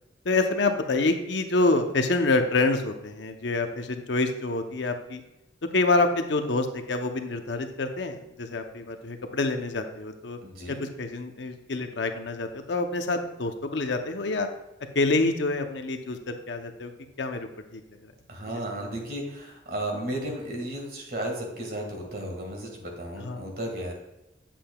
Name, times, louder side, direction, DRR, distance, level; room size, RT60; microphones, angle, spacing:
voice 1, 0.2-5.2 5.7-10.4 10.7-14.5 14.9-16.9 17.2-18.1 18.7-18.9 23.2-23.5, left 3 dB, 75° left, 6 dB, 0.7 m, -27 dB
voice 2, 10.4-10.7 18.3-23.9, right 1 dB, 55° right, 1 dB, 1.8 m, -34 dB
8.5 x 7.6 x 2.3 m, 0.95 s
head